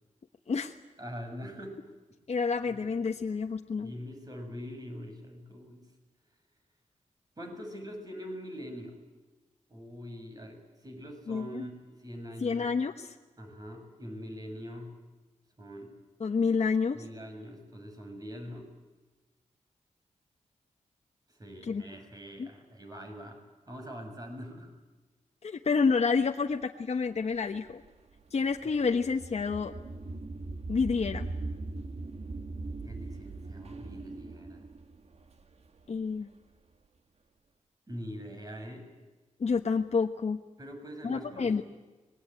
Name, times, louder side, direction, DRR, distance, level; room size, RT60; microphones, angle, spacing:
voice 1, 1.0-1.8 2.6-2.9 3.8-5.9 7.4-9.0 9.7-12.7 13.4-14.9 15.6-16.0 16.9-18.7 21.3-23.4 23.7-24.8 32.8-34.6 37.9-38.9 40.6-41.6, equal, 30° right, 4 dB, 6.6 m, -43 dB
voice 2, 2.3-3.9 11.3-11.6 12.4-13.1 16.2-17.0 21.6-21.8 22.4-22.5 25.4-27.8 28.3-29.7 30.7-31.3 35.9-36.3 39.4-40.4 41.0-41.6, left 5 dB, 55° left, 3 dB, 1.2 m, -29 dB
sound 1, 27.4-36.3, right 3 dB, 55° right, 1.7 m, -40 dB
26.0 x 21.5 x 9.1 m, 1.2 s
wide cardioid pair, 90°, 13 cm